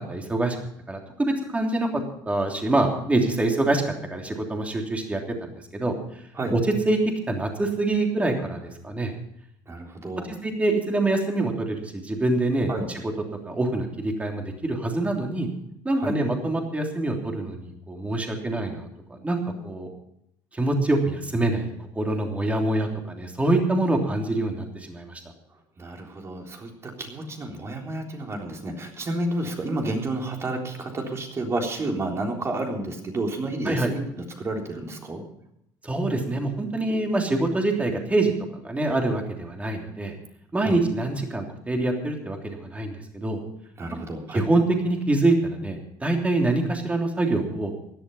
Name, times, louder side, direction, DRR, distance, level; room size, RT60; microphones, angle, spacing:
voice 1, 0.1-0.6 0.9-1.9 2.3-5.9 6.5-6.6 6.8-7.0 7.3-9.1 10.3-13.0 13.4-15.5 15.8-19.4 19.6-19.9 20.5-21.7 21.9-25.2 33.6-33.9 35.8-40.1 40.5-43.4 44.3-47.7, right 2 dB, 15° right, 2 dB, 3.2 m, -25 dB
voice 2, 9.7-10.4 12.7-12.9 16.0-16.2 25.8-35.2 40.6-40.8 43.8-44.5, right 2 dB, 30° right, 1 dB, 3.7 m, -31 dB
16.5 x 11.5 x 5.5 m, 0.76 s
cardioid pair, 115°, 9 cm